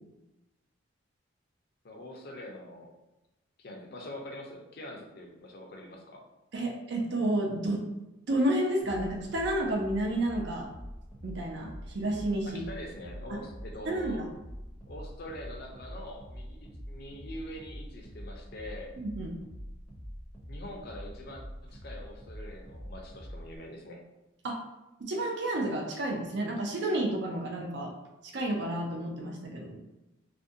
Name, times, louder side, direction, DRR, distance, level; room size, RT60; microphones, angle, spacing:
voice 1, 1.8-2.9 3.6-6.2 12.4-14.2 14.9-18.9 20.5-24.0, left 1 dB, 50° left, 0 dB, 0.5 m, -44 dB
voice 2, 6.5-7.9 8.3-10.7 11.2-12.6 13.3-13.4 13.9-14.3 19.0-19.4 24.4-24.6 25.0-27.9 28.2-29.8, right 1 dB, 55° right, 0 dB, 0.4 m, -31 dB
sound 1, 8.8-23.6, equal, 5° right, 0.6 m, -45 dB
2.5 x 2.1 x 2.6 m, 0.99 s
head